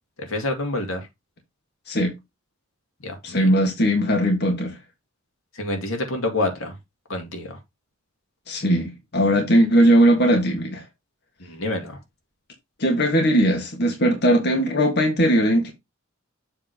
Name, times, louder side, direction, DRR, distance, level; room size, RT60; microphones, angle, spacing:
voice 1, 0.2-1.0 3.0-3.5 5.6-6.7 7.1-7.6 11.4-12.0, left 2 dB, 80° left, 2.2 m, -27 dB
voice 2, 3.2-4.8 8.5-10.8 12.8-15.7, equal, 55° left, 1.6 m, -19 dB
7.4 x 3.6 x 4.9 m
head